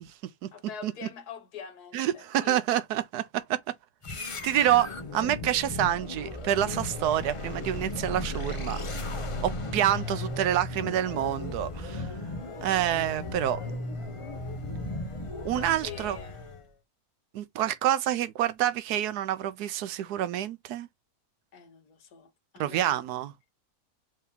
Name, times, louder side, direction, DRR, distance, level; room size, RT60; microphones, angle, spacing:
voice 1, 0.5-2.6 15.5-16.5 21.5-22.9, left 7 dB, 80° left, 1.6 m, -44 dB
voice 2, 1.9-3.6 4.4-8.8 9.4-12.1 12.6-13.6 15.4-16.2 17.3-20.9 22.6-23.3, right 11 dB, 90° right, 1.2 m, -27 dB
sound 1, 4.0-16.7, left 2 dB, 30° left, 0.6 m, -36 dB
4.7 x 2.9 x 3.4 m
omnidirectional pair, 1.6 m